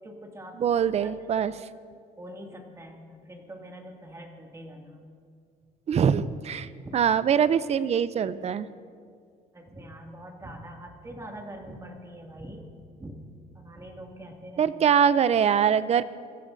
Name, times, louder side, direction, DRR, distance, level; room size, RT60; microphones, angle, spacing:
voice 1, 0.0-0.6 1.0-1.1 1.4-1.5 2.2-5.0 6.8-7.1 9.5-12.7 13.0-13.2 13.5-14.7, right 1 dB, 20° right, 1 dB, 2.3 m, -43 dB
voice 2, 0.6-1.5 5.9-8.7 14.6-16.0, right 8 dB, 40° right, 15 dB, 0.6 m, -23 dB
23.5 x 15.0 x 2.7 m, 2.2 s
cardioid pair, 110°, 17 cm